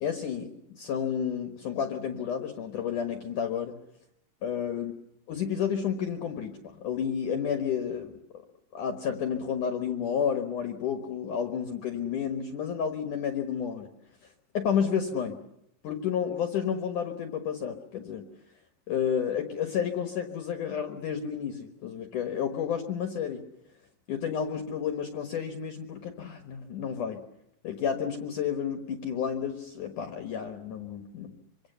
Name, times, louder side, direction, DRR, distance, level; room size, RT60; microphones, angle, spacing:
voice 1, 0.0-3.7 4.4-4.9 5.3-8.2 8.7-13.9 14.5-15.4 15.8-18.3 18.9-23.4 24.1-27.2 27.6-31.3, left 7 dB, 65° left, 6 dB, 2.0 m, -31 dB
25.5 x 25.0 x 6.8 m, 0.80 s
omnidirectional pair, 5.5 m